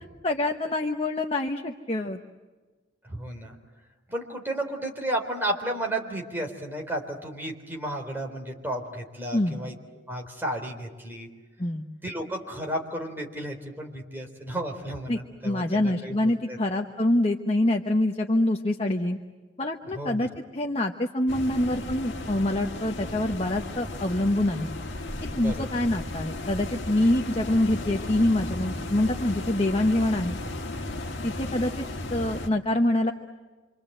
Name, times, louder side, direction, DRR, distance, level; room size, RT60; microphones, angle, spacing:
voice 1, 0.2-2.2 9.3-9.6 11.6-11.9 15.1-19.2 19.6-24.7 25.3-30.4 31.2-31.8 32.1-33.1, left 1 dB, 30° left, 3 dB, 1.1 m, -25 dB
voice 2, 3.0-3.5 4.1-9.7 10.1-11.3 12.0-16.6 19.9-20.3 25.3-25.7, right 1 dB, 10° right, 1 dB, 3.7 m, -33 dB
sound 1, 21.3-32.5, left 2 dB, 65° left, 1.7 m, -35 dB
27.5 x 25.5 x 7.9 m, 1.3 s
head